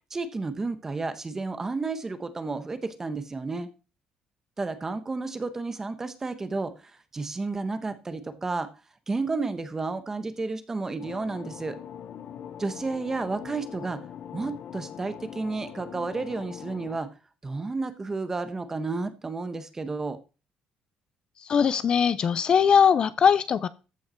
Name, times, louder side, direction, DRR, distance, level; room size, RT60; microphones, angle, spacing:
voice 1, 0.1-3.7 4.6-6.7 7.1-8.7 9.1-11.8 12.6-14.0 14.3-17.1 17.4-20.2, right 3 dB, 20° right, 10 dB, 1.2 m, -31 dB
sound 1, 11.0-17.0, left 9 dB, 60° left, 1.1 m, -42 dB
voice 2, 21.4-23.7, left 7 dB, 40° left, 15 dB, 0.6 m, -21 dB
14.0 x 5.6 x 4.4 m, 0.33 s
cardioid pair, 125°, 2 cm